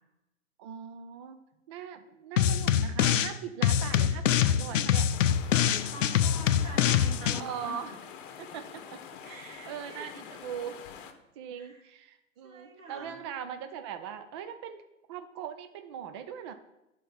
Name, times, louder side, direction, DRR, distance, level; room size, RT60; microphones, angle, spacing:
voice 1, 0.6-1.4 1.7-5.1 7.3-8.0 8.4-10.7 11.4-14.8 15.1-16.5, right 8 dB, 25° right, 8 dB, 0.3 m, -40 dB
sound 1, 2.4-3.3 3.6-7.4, left 9 dB, 70° left, 0.6 m, -25 dB
sound 2, 5.1-11.1, left 7 dB, 40° left, 1.1 m, -46 dB
voice 2, 5.5-8.0 9.2-10.3 11.5-11.8 12.4-13.2, right 1 dB, 80° right, -2 dB, 2.8 m, -45 dB
10.0 x 4.4 x 5.6 m, 0.95 s
hypercardioid pair, 115°, 39 cm